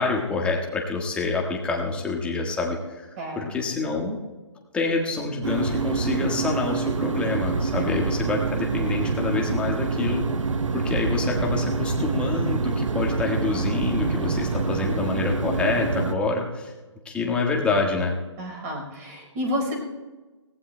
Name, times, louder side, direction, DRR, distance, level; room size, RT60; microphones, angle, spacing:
voice 1, 0.0-3.1 3.4-4.2 4.7-10.3 10.7-16.7 17.0-18.1, left 3 dB, 5° left, -1 dB, 1.5 m, -27 dB
voice 2, 3.2-3.5 7.7-7.8 14.3-14.7 18.4-19.8, equal, 30° right, 2 dB, 4.3 m, -31 dB
sound 1, 5.4-16.1, right 4 dB, 90° right, 0.9 m, -26 dB
23.0 x 17.5 x 2.2 m, 1.2 s
hypercardioid pair, 150°, 16 cm